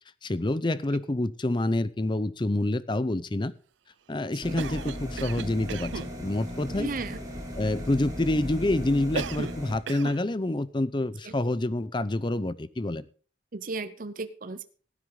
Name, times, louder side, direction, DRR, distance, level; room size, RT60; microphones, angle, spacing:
voice 1, 0.2-3.5 4.1-6.9 7.6-13.1, left 1 dB, 25° left, 16 dB, 0.6 m, -27 dB
sound 1, 4.4-9.7, left 1 dB, 20° right, 3.3 m, -37 dB
Cough, 4.6-6.1 9.2-9.6 9.9-10.2, right 6 dB, 85° right, 0.5 m, -35 dB
voice 2, 6.7-7.2 11.2-11.3 13.5-14.6, right 3 dB, 45° right, 11 dB, 0.7 m, -35 dB
17.0 x 9.7 x 3.8 m, 0.40 s
head